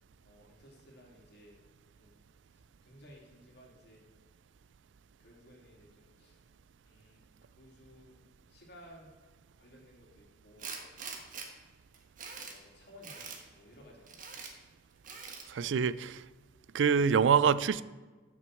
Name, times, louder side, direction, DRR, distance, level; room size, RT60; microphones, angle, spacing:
voice 1, 0.2-1.6 2.0-2.2 2.5-4.0 5.2-6.4 6.8-7.3 7.6-8.2 8.5-9.1 9.5-10.9 12.4-14.3, equal, 60° left, -1 dB, 2.8 m, -57 dB
Tools, 10.6-11.5 11.9-12.6 13.0-13.4 14.1-14.5 15.0-15.5, right 5 dB, 45° right, 1.4 m, -43 dB
voice 2, 15.5-16.2 16.7-17.8, right 6 dB, 85° right, 17 dB, 0.4 m, -25 dB
7.6 x 6.4 x 7.7 m, 1.3 s
head